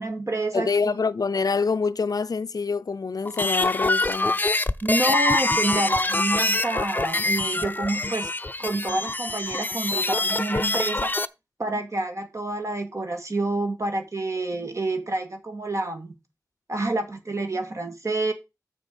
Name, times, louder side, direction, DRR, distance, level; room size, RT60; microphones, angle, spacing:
voice 1, 0.0-1.0 4.8-8.3 8.6-11.1 11.6-16.1 16.7-18.3, right 2 dB, 55° right, 1.8 m, -28 dB
voice 2, 0.5-4.4 5.7-5.8, left 4 dB, 80° left, 0.5 m, -26 dB
sound 1, 3.3-11.3, left 2 dB, 30° left, 0.5 m, -25 dB
7.2 x 6.4 x 5.2 m
wide cardioid pair, 55°, 6 cm